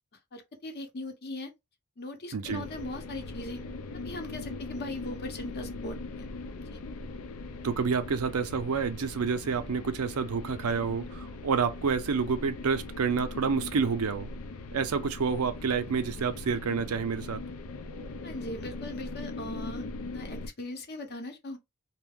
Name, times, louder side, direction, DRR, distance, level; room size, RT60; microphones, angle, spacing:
voice 1, 0.3-1.5 2.0-3.6 3.9-6.3 6.6-6.8 18.2-19.9 20.1-21.6, left 2 dB, 50° left, 0.8 m, -39 dB
voice 2, 2.3-2.6 7.6-14.3 14.7-17.4, right 5 dB, 85° right, 0.5 m, -29 dB
sound 1, 2.4-20.5, left 2 dB, 80° left, 0.4 m, -40 dB
2.5 x 2.1 x 3.4 m
head